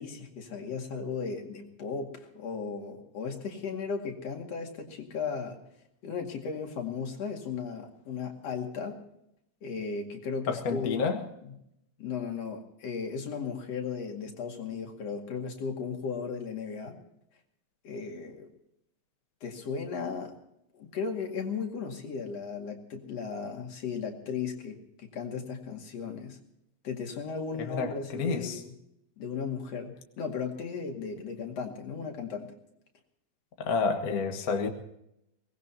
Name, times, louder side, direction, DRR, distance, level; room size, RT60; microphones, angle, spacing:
voice 1, 0.0-5.6 6.0-9.0 9.6-11.0 11.4-11.5 12.0-17.0 17.8-18.5 19.4-20.3 20.7-26.4 26.8-28.7 29.2-32.5, left 5 dB, 60° left, 3.3 m, -36 dB
voice 2, 10.5-11.2 27.6-28.6 33.6-34.7, left 5 dB, 40° left, 1.4 m, -29 dB
23.5 x 19.0 x 2.9 m
omnidirectional pair, 3.4 m